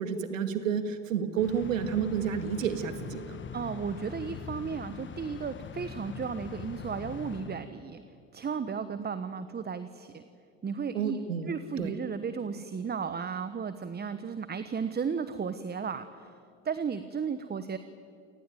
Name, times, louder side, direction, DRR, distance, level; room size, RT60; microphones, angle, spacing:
voice 1, 0.0-3.4 10.9-11.9, right 7 dB, 85° right, 9 dB, 2.1 m, -30 dB
sound 1, 1.4-8.2, left 8 dB, 30° left, 1.3 m, -43 dB
voice 2, 3.5-8.0 8.3-10.2 10.6-11.2 11.5-16.3 16.6-17.8, right 6 dB, 25° right, 12 dB, 1.2 m, -34 dB
27.5 x 19.5 x 9.3 m, 2.3 s
hypercardioid pair, 75°, 38 cm